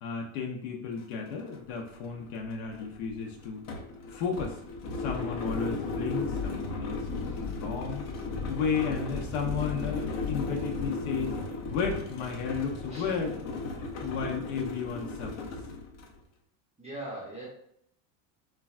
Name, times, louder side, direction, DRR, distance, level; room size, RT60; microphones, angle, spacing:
voice 1, 0.0-3.6 4.1-4.6 5.0-8.0 8.5-11.4 11.7-13.4 14.0-15.5, left 5 dB, 75° left, 1 dB, 0.7 m, -33 dB
sound 1, 1.0-1.1 1.4-16.2, left 3 dB, 35° left, 0.5 m, -35 dB
voice 2, 7.2-7.5 12.9-13.1 16.8-17.5, right 1 dB, 15° right, -4 dB, 0.5 m, -41 dB
3.2 x 2.2 x 2.3 m, 0.73 s
supercardioid pair, 120°, 45 cm